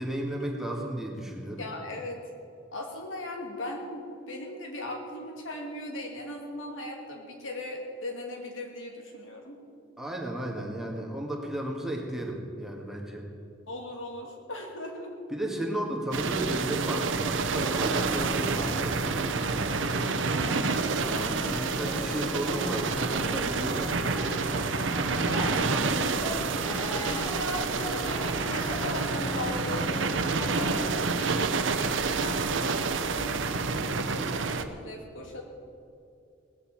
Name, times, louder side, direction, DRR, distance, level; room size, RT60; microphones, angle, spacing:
voice 1, 0.0-1.6 10.0-13.3 15.3-19.3 19.8-20.6 21.0-24.5 25.2-26.1, right 1 dB, ahead, -1 dB, 2.0 m, -34 dB
voice 2, 1.6-2.2 2.7-9.6 13.7-15.3 20.0-20.5 23.3-23.6 25.3-26.1 27.0-29.9 30.4-35.4, left 1 dB, 80° left, 1 dB, 2.6 m, -38 dB
sound 1, 16.1-34.6, right 4 dB, 70° right, 0.8 m, -28 dB
sound 2, 17.6-31.0, left 2 dB, 15° left, 0.3 m, -40 dB
18.5 x 7.2 x 8.8 m, 2.5 s
head